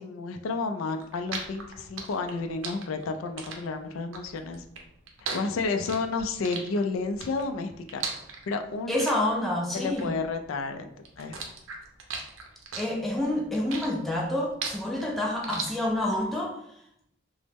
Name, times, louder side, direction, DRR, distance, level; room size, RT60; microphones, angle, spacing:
voice 1, 0.0-4.6 5.3-8.0 8.5-9.0 9.7-11.4, left 4 dB, 90° left, 7 dB, 0.3 m, -31 dB
sound 1, 0.9-10.7 11.0-16.2, right 5 dB, 85° right, 0.5 m, -38 dB
voice 2, 8.9-10.1 12.8-16.5, left 1 dB, ahead, -3 dB, 0.5 m, -28 dB
3.0 x 2.0 x 3.3 m, 0.76 s
head